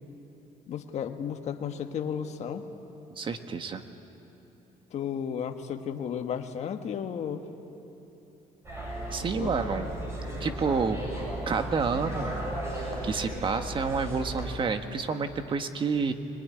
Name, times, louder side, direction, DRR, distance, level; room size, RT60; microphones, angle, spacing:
voice 1, 0.7-2.7 4.9-7.4 9.4-9.7, left 8 dB, 50° left, 5 dB, 1.5 m, -33 dB
voice 2, 3.2-3.8 9.1-9.9 10.4-11.0 11.5-12.3 12.7-16.1, right 5 dB, 35° right, 7 dB, 1.5 m, -29 dB
sound 1, 8.6-14.5, right 1 dB, 20° right, 7.7 m, -35 dB
22.5 x 22.0 x 9.9 m, 2.9 s
cardioid pair, 125°, 14 cm